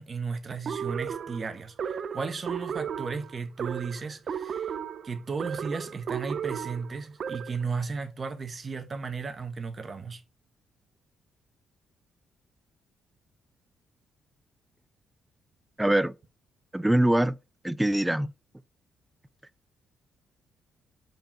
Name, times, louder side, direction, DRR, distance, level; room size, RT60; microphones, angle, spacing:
voice 1, 0.0-4.7 5.0-10.2, right 5 dB, 35° right, 1.3 m, -35 dB
sound 1, 0.6-7.7, right 7 dB, 55° right, 0.6 m, -35 dB
voice 2, 15.8-16.1 16.7-17.4 17.6-18.3, right 1 dB, 10° right, 0.4 m, -23 dB
5.1 x 4.5 x 6.1 m
cardioid pair, 90°, 0 cm